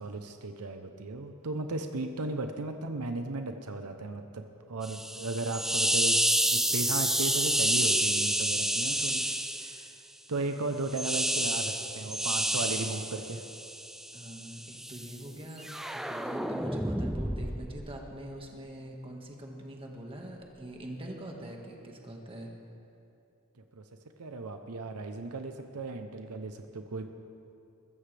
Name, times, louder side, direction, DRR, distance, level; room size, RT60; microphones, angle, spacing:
voice 1, 0.0-9.2 9.6-9.9 10.3-13.4 23.7-23.8 24.2-27.1, right 2 dB, 85° right, 6 dB, 0.8 m, -36 dB
sound 1, 4.8-9.9 10.9-15.1 15.6-18.0, right 1 dB, ahead, 0.3 m, -29 dB
voice 2, 14.1-22.5, right 1 dB, 25° right, 0 dB, 1.7 m, -43 dB
21.5 x 14.5 x 3.4 m, 2.8 s
head